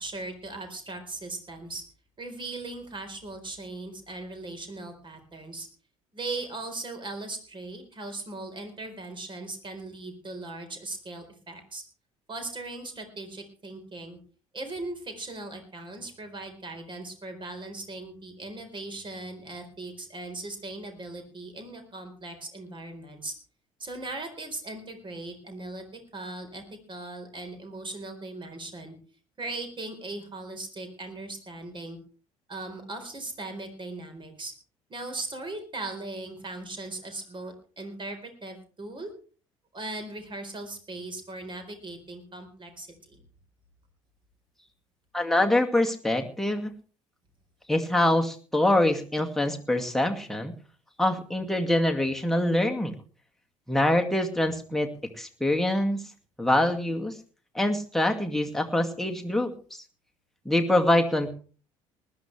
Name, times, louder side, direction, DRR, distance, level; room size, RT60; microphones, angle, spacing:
voice 1, 0.0-1.8 2.2-5.7 6.1-11.8 12.3-14.2 14.5-23.3 23.8-26.6 26.9-29.0 29.4-32.0 32.5-34.5 34.9-39.1 39.7-43.2, right 2 dB, 30° right, 6 dB, 4.2 m, -38 dB
voice 2, 45.1-46.7 47.7-50.5 51.0-52.9 53.7-54.9 55.2-56.0 56.4-57.2 57.5-59.8 60.5-61.3, left 1 dB, ahead, 3 dB, 2.2 m, -25 dB
19.5 x 13.0 x 3.3 m, 0.38 s
figure-of-eight pair, 55°, 17 cm